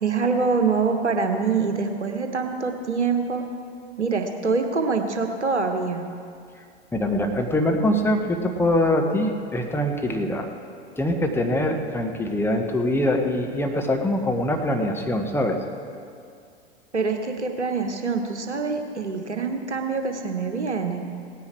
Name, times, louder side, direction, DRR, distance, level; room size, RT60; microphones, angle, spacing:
voice 1, 0.0-3.4 4.0-6.0 16.9-21.0, right 4 dB, 90° right, 5 dB, 1.1 m, -25 dB
voice 2, 6.9-10.5 11.0-15.6, left 1 dB, 5° left, 3 dB, 1.1 m, -23 dB
17.5 x 9.7 x 4.5 m, 2.4 s
figure-of-eight pair, 95°, 33 cm